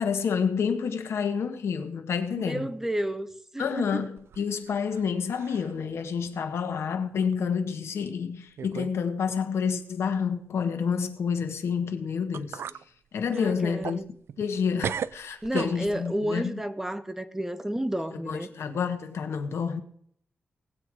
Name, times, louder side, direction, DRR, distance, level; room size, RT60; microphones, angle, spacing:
voice 1, 0.0-2.7 3.6-12.6 13.1-14.0 14.4-16.5 18.1-19.8, left 6 dB, 85° left, 1.6 m, -29 dB
voice 2, 2.4-3.3 3.5-4.0 13.3-14.1 15.4-18.5, right 1 dB, 10° right, 1.0 m, -31 dB
sound 1, 4.2-5.1 5.3-5.8 6.3-6.4 7.2-7.3 8.1-8.2 8.6-9.0 9.2-9.4 11.9-12.0 12.3-12.8 13.3-14.6 14.8-16.1, right 8 dB, 80° right, 0.4 m, -36 dB
19.5 x 8.0 x 4.9 m
wide cardioid pair, 100°, 4 cm